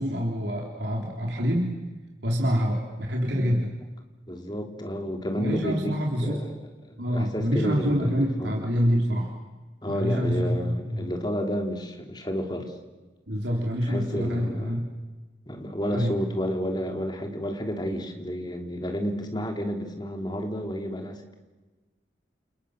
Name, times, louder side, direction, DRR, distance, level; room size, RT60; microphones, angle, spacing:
voice 1, 0.0-1.8 2.2-3.8 5.4-6.5 7.0-9.3 9.9-11.1 13.3-14.8 15.9-16.1, equal, 75° right, 0 dB, 3.7 m, -26 dB
voice 2, 4.3-5.9 6.2-6.6 6.8-8.5 9.8-12.8 13.8-14.8 15.4-21.3, equal, 25° left, 4 dB, 3.2 m, -31 dB
29.5 x 29.0 x 6.7 m, 1.2 s
head